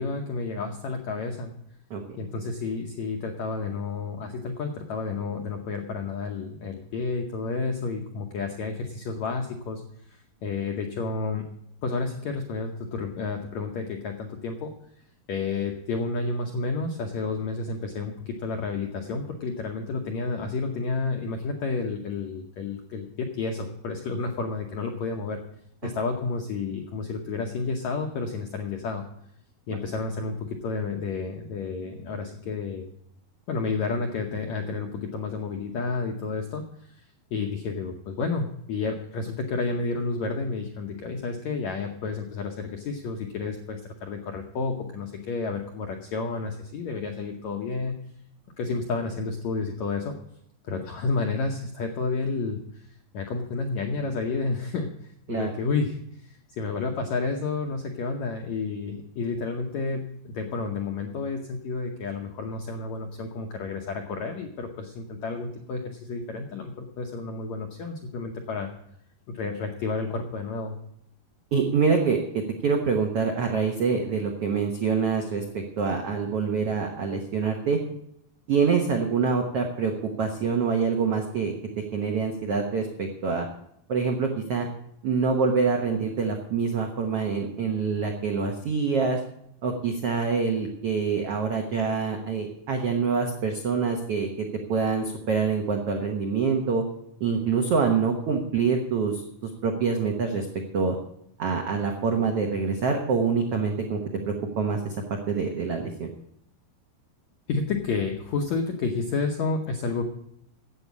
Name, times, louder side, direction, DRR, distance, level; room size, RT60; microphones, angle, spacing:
voice 1, 0.0-1.5 2.2-9.8 10.1-11.4 11.8-14.7 15.3-25.4 25.8-29.0 29.7-32.9 33.5-37.1 37.3-48.0 48.6-50.1 50.6-54.9 55.3-68.7 69.3-70.8 107.5-110.0, left 4 dB, 90° left, 3 dB, 1.5 m, -31 dB
voice 2, 1.9-2.3 55.3-55.5 71.5-77.8 78.5-83.5 83.9-84.7 85.0-89.2 89.6-96.8 97.2-100.5 100.7-101.0 101.4-104.0 104.3-106.1, right 5 dB, 85° right, 3 dB, 1.3 m, -26 dB
11.0 x 8.2 x 8.3 m, 0.75 s
omnidirectional pair, 4.6 m